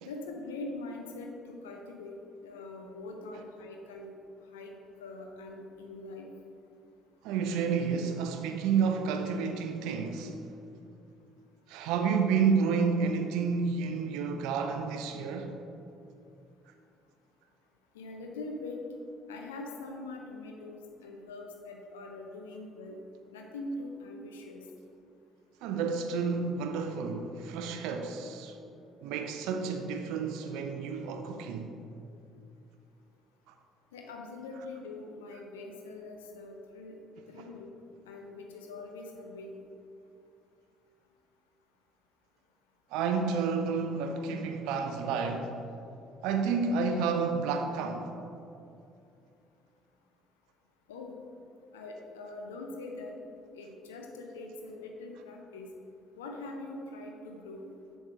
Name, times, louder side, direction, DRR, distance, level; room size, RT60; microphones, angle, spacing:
voice 1, 0.0-2.2 2.4-4.1 4.5-4.7 5.0-6.3 17.9-18.8 19.3-23.0 23.3-24.6 33.9-36.9 37.3-37.7 38.1-39.6 50.9-51.2 51.7-53.1 53.5-55.7 56.2-57.7, left 2 dB, 75° left, 0.5 m, -43 dB
voice 2, 7.2-10.4 11.7-15.6 25.6-28.6 29.0-31.7 33.5-33.6 34.5-34.7 37.4-37.5 42.9-45.6 46.2-48.1, right 5 dB, 65° right, 0.4 m, -30 dB
7.0 x 4.1 x 4.7 m
figure-of-eight pair, 50°, 0 cm